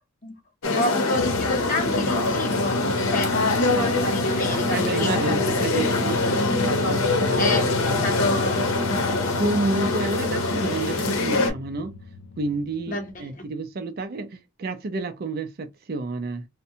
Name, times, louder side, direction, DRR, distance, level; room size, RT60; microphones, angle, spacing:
sound 1, 0.6-11.5, left 2 dB, 90° left, 0.7 m, -24 dB
voice 1, 0.7-5.1 7.4-8.7 12.9-13.4, left 2 dB, 40° left, 0.7 m, -29 dB
sound 2, 1.1-13.3, left 4 dB, 65° left, 0.4 m, -33 dB
voice 2, 4.4-6.4 6.9-7.6 9.3-12.0 12.4-16.5, right 3 dB, 50° right, 0.4 m, -30 dB
2.6 x 2.1 x 2.6 m
head